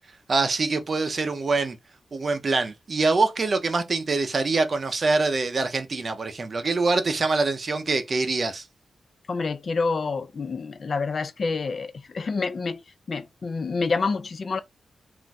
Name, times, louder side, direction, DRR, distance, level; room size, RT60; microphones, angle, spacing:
voice 1, 0.3-1.8 2.1-8.6, right 3 dB, 40° right, 0.5 m, -24 dB
voice 2, 9.3-12.8 13.1-14.6, left 4 dB, 45° left, 0.3 m, -28 dB
2.5 x 2.2 x 3.9 m
wide cardioid pair, 165°, 0 cm